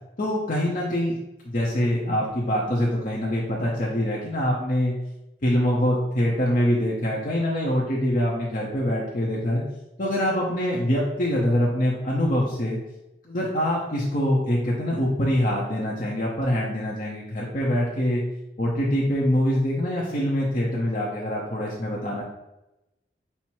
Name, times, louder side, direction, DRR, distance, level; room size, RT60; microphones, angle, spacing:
voice 1, 0.2-1.2 1.4-4.9 5.4-9.6 10.0-12.8 13.3-18.2 18.6-22.2, equal, 50° left, -5 dB, 0.7 m, -24 dB
5.6 x 2.1 x 4.5 m, 0.95 s
head